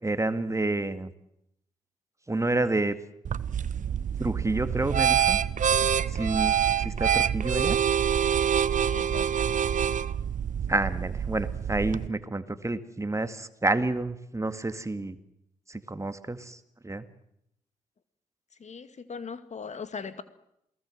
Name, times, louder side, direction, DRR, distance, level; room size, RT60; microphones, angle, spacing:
voice 1, 0.0-1.1 2.3-3.0 4.2-5.4 6.1-7.8 10.7-15.2 15.7-16.6 16.8-17.0, right 2 dB, 20° right, 2.0 m, -29 dB
sound 1, 3.2-12.1, right 8 dB, 55° right, 1.0 m, -26 dB
voice 2, 8.8-9.5 18.6-20.2, left 5 dB, 50° left, 2.1 m, -40 dB
28.0 x 19.0 x 7.8 m
hypercardioid pair, 45°, 15 cm